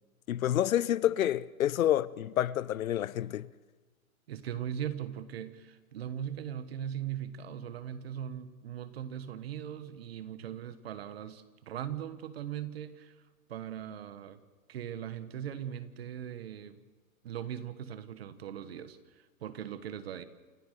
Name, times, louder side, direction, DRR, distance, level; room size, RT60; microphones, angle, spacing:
voice 1, 0.3-3.5, left 11 dB, 70° left, 0.8 m, -28 dB
voice 2, 4.3-13.2 13.5-14.4 14.7-16.8 17.2-20.2, right 10 dB, 45° right, 1.3 m, -39 dB
28.5 x 14.5 x 6.7 m
hypercardioid pair, 165°, 43 cm